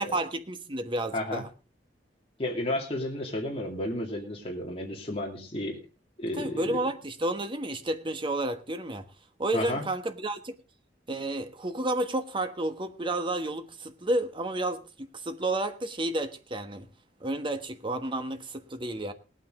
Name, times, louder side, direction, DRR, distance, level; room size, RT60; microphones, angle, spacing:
voice 1, 0.0-1.5 6.3-9.0 9.4-10.5 11.1-16.9 17.2-19.1, right 1 dB, 30° right, 1.3 m, -31 dB
voice 2, 2.4-5.8 6.2-6.8 9.5-9.8, left 1 dB, 35° left, 2.6 m, -32 dB
19.5 x 9.1 x 3.8 m
head